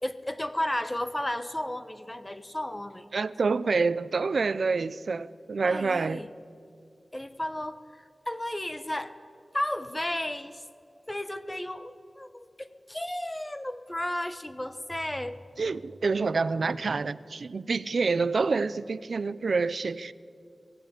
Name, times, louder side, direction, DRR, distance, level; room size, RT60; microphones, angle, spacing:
voice 1, 0.0-3.2 5.6-6.3 7.1-9.1 9.5-10.6 11.1-15.4, left 1 dB, 15° left, 1.1 m, -33 dB
voice 2, 3.1-6.2 15.6-20.1, right 4 dB, 75° right, 0.6 m, -27 dB
24.5 x 17.5 x 8.3 m
wide cardioid pair, 85°, 0 cm